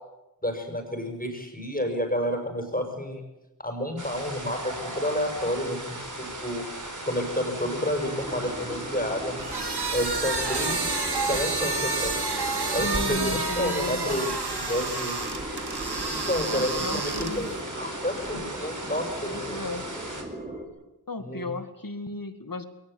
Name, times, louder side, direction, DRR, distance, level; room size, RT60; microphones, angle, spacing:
voice 1, 0.4-3.2 3.6-6.6 7.0-9.4 9.9-10.8 11.3-12.1 12.7-15.2 16.1-17.5 17.8-19.6 21.2-21.5, left 1 dB, 20° left, 4 dB, 6.8 m, -30 dB
sound 1, 4.0-20.2, right 1 dB, 50° right, 4.3 m, -38 dB
sound 2, 8.0-20.6, right 1 dB, 20° right, 5.9 m, -39 dB
sound 3, 9.4-17.6, right 3 dB, 90° right, 2.2 m, -30 dB
voice 2, 12.8-14.2 16.5-17.5 19.2-19.9 21.1-22.7, left 2 dB, 60° left, 9 dB, 2.2 m, -34 dB
21.5 x 20.0 x 8.6 m, 0.96 s
wide cardioid pair, 40°, 38 cm